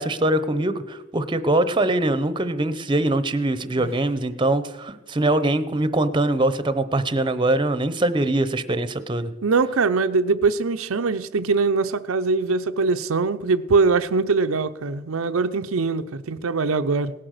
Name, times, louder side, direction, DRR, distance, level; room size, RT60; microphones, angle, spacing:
voice 1, 0.0-9.3, right 1 dB, 25° right, 0.8 m, -22 dB
voice 2, 9.4-17.1, right 4 dB, 85° right, 0.7 m, -22 dB
18.0 x 10.0 x 6.6 m
head